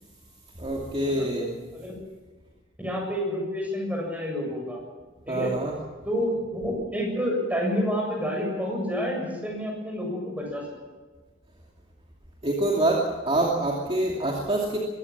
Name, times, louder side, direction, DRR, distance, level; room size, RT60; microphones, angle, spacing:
voice 1, 0.6-1.6 5.3-5.8 12.4-14.8, right 1 dB, 30° right, -1 dB, 2.6 m, -26 dB
voice 2, 2.8-4.8 5.3-5.5 6.0-10.6, equal, 5° right, 0 dB, 7.4 m, -29 dB
23.0 x 16.0 x 7.3 m, 1.3 s
head